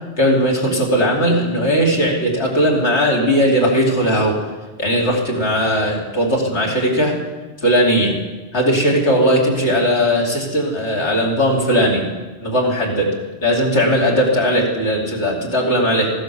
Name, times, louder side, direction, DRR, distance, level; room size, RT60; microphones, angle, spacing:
voice 1, 0.2-4.4 4.8-7.1 7.6-8.1 8.5-12.0 12.4-13.1 13.4-16.1, equal, 75° left, -3 dB, 3.3 m, -17 dB
14.5 x 11.5 x 7.0 m, 1.2 s
omnidirectional pair, 1.2 m